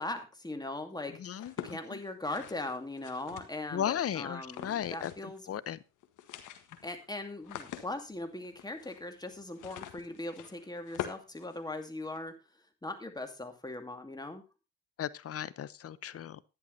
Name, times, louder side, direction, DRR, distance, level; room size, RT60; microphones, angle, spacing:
voice 1, 0.0-5.6 6.8-12.3 12.8-14.4, left 2 dB, 15° left, 2.5 m, -40 dB
voice 2, 1.2-2.0 3.7-5.8 15.0-16.4, left 10 dB, 50° left, 0.8 m, -36 dB
sound 1, 1.3-3.8 4.4-5.4 5.6-5.7 6.0-12.2, left 11 dB, 80° left, 1.6 m, -45 dB
11.5 x 10.0 x 4.0 m
cardioid pair, 90°, 30 cm